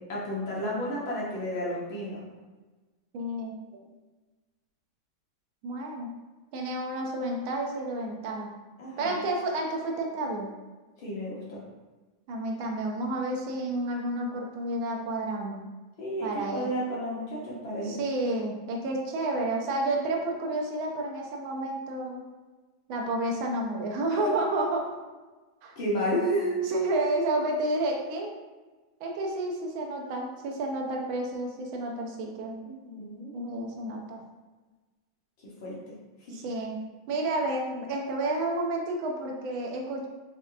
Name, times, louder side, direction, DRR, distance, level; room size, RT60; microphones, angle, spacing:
voice 1, 0.1-2.2 8.8-9.2 11.0-11.6 16.0-18.0 24.1-24.3 25.7-26.6 32.6-33.4 35.4-35.8 36.2-36.4, equal, 50° left, -6 dB, 1.1 m, -32 dB
voice 2, 3.1-3.5 5.6-6.1 6.5-8.5 9.0-10.5 12.3-15.6 16.2-16.7 17.8-22.2 22.9-24.9 25.6-25.8 26.6-28.3 29.0-32.6 33.3-34.2 36.3-40.1, right 2 dB, 40° right, 0 dB, 0.6 m, -30 dB
3.4 x 2.8 x 2.4 m, 1.2 s
supercardioid pair, 160°, 2 cm